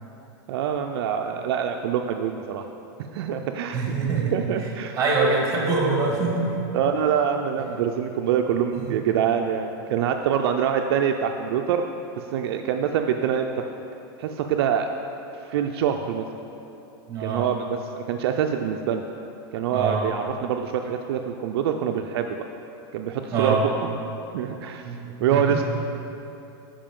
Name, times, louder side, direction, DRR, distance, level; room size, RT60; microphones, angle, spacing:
voice 1, 0.5-2.6 3.1-3.9 4.3-5.0 6.7-11.8 12.2-13.5 14.2-14.9 15.4-16.3 17.2-19.0 19.5-22.4 22.9-23.7 24.3-25.6, right 8 dB, 70° right, 4 dB, 0.4 m, -25 dB
voice 2, 3.7-4.4 4.9-6.6 17.1-17.5 19.7-20.1 23.3-23.6 24.8-25.0 25.3-25.6, right 4 dB, 25° right, -1 dB, 1.6 m, -24 dB
9.9 x 5.0 x 3.7 m, 2.9 s
supercardioid pair, 140°, 13 cm